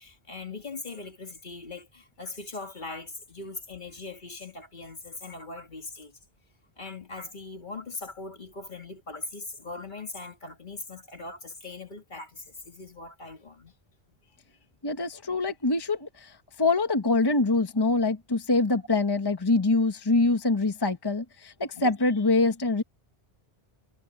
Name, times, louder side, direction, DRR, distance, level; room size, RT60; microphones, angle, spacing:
voice 1, 0.0-6.2 6.8-13.7 21.7-21.9, left 3 dB, 50° left, 2.1 m, -40 dB
voice 2, 14.8-22.8, left 3 dB, 25° left, 1.1 m, -25 dB
omnidirectional pair, 1.1 m